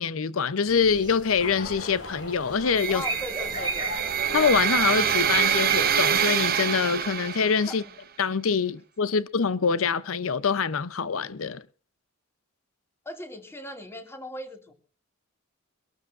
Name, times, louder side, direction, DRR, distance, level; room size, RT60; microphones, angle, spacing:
voice 1, 0.0-3.0 4.3-7.8 8.2-11.6, left 5 dB, 75° left, 0.7 m, -25 dB
sound 1, 0.7-6.0, right 4 dB, 20° right, 1.2 m, -37 dB
sound 2, 1.4-6.6, left 2 dB, 60° left, 5.2 m, -40 dB
sound 3, 2.8-7.8, right 8 dB, 45° right, 1.0 m, -25 dB
voice 2, 2.9-4.0 7.7-8.0 13.1-14.7, left 1 dB, 10° left, 2.3 m, -38 dB
24.5 x 13.0 x 2.5 m
head